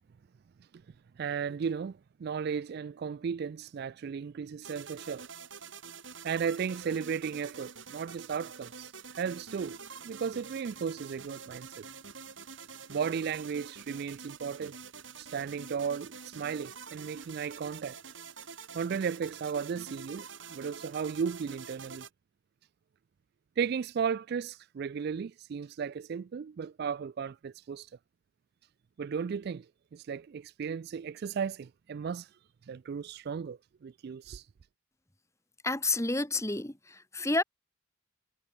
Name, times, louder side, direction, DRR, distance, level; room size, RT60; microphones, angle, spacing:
voice 1, 1.2-5.3 6.2-9.8 10.0-11.9 12.9-14.8 15.2-18.0 18.7-22.0 23.6-27.9 29.0-29.7 29.9-32.3 32.7-34.4, right 6 dB, 50° right, 0.3 m, -35 dB
sound 1, 4.6-22.1, right 6 dB, 65° right, 6.0 m, -47 dB
voice 2, 35.6-37.4, left 2 dB, 15° left, 1.7 m, -30 dB
head